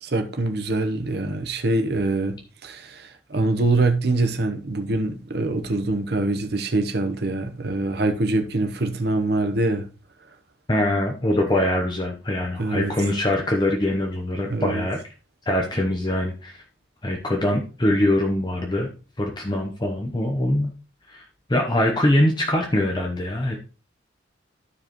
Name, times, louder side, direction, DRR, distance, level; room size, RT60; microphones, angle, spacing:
voice 1, 0.0-9.9 12.6-12.9 14.4-14.8, right 2 dB, 55° right, 0.9 m, -24 dB
voice 2, 10.7-15.0 15.5-16.6 17.0-18.9 19.2-20.7 21.1-21.2 21.5-23.6, left 1 dB, 20° left, 0.8 m, -23 dB
13.0 x 4.7 x 3.0 m
head